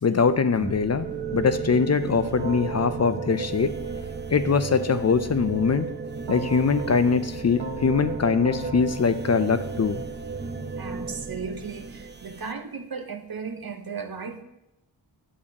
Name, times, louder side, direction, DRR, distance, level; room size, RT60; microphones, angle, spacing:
voice 1, 0.0-3.7 4.3-5.9 6.3-10.0, left 5 dB, 35° left, 11 dB, 0.5 m, -22 dB
sound 1, 0.6-12.5, right 5 dB, 25° right, 0.5 m, -34 dB
Keyboard (musical), 2.4-4.7 6.3-10.6, right 3 dB, 75° right, 1.1 m, -39 dB
voice 2, 10.8-14.4, right 5 dB, 55° right, 5 dB, 0.9 m, -35 dB
8.4 x 6.9 x 2.8 m, 0.88 s
cardioid pair, 40°, 44 cm